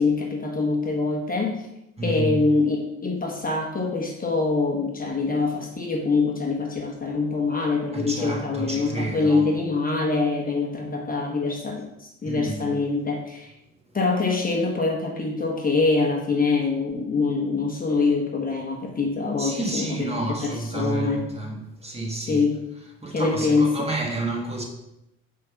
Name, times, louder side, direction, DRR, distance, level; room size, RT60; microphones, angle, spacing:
voice 1, 0.0-1.6 2.0-13.5 13.9-20.1 20.4-21.3 22.3-22.6 23.1-23.9, left 3 dB, 30° left, 1.1 m, -24 dB
voice 2, 2.0-2.4 7.9-9.5 12.2-12.8 19.4-22.4 23.0-24.6, right 2 dB, 20° right, 1.5 m, -30 dB
5.1 x 3.8 x 5.8 m
cardioid pair, 90°, 30 cm